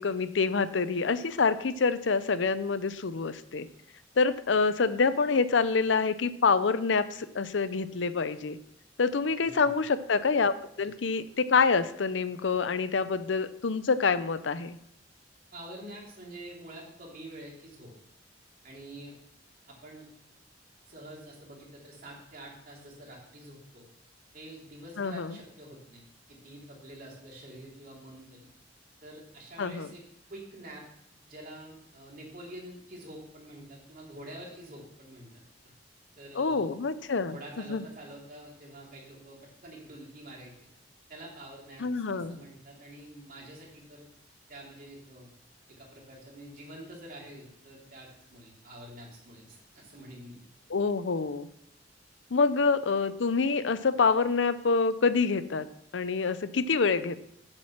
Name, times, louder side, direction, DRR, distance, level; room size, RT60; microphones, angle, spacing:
voice 1, 0.0-3.7 4.2-8.6 9.0-14.8 25.0-25.4 29.6-29.9 36.3-37.4 37.7-37.8 41.8-42.4 50.7-51.5 52.3-55.7 55.9-57.2, left 4 dB, 80° left, 14 dB, 0.6 m, -26 dB
voice 2, 9.4-9.8 15.5-17.9 18.6-19.2 19.7-20.1 20.9-23.8 24.3-26.0 26.3-28.5 29.0-30.0 30.3-30.8 31.3-35.3 36.2-36.6 37.3-40.5 41.1-44.1 44.5-45.3 45.7-50.4, right 1 dB, 50° right, -2 dB, 3.1 m, -47 dB
7.6 x 7.6 x 5.9 m, 0.76 s
head